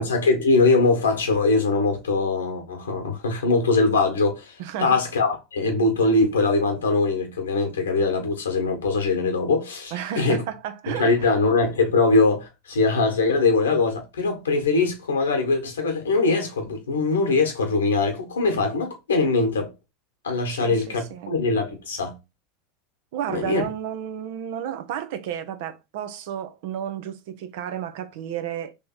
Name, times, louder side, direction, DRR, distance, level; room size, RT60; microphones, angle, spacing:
voice 1, 0.0-10.4 10.9-19.7 20.2-22.1 23.3-23.6, left 3 dB, 80° left, 1.3 m, -22 dB
voice 2, 4.6-5.0 9.9-11.4 20.5-21.4 23.1-28.7, right 10 dB, 65° right, 0.7 m, -32 dB
3.4 x 2.9 x 4.4 m
hypercardioid pair, 85°, 0 cm